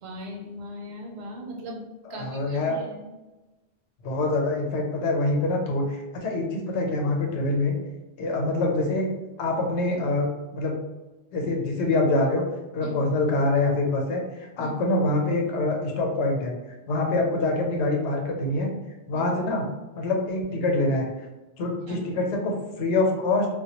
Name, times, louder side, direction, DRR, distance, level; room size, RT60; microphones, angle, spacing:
voice 1, 0.0-1.8 2.1-3.1 12.8-13.0 14.6-14.7 19.1-19.2 21.9-22.1, equal, 75° right, 0 dB, 0.8 m, -39 dB
voice 2, 2.1-2.8 4.0-7.8 8.2-9.1 9.4-10.8 11.3-12.4 12.7-16.5 16.9-18.7 19.1-19.6 20.0-21.1 21.6-23.5, left 2 dB, 85° left, 1 dB, 0.9 m, -25 dB
2.2 x 2.1 x 2.8 m, 1.1 s
omnidirectional pair, 1.2 m